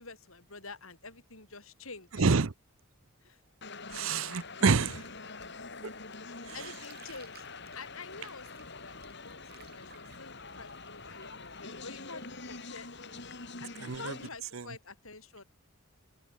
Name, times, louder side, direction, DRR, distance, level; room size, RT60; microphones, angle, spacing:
voice 1, 0.0-2.2 3.2-3.4 6.5-7.4 7.7-12.9 13.6-15.4, left 4 dB, 75° left, 6.3 m, -48 dB
voice 2, 2.2-2.5 3.9-5.1 6.4-6.5 13.8-14.1 14.5-14.7, right 4 dB, 70° right, 0.8 m, -27 dB
sound 1, 3.6-14.3, left 3 dB, 55° left, 5.5 m, -45 dB
Bathtub (filling or washing), 6.5-12.2, right 8 dB, 45° right, 6.4 m, -57 dB
open air
head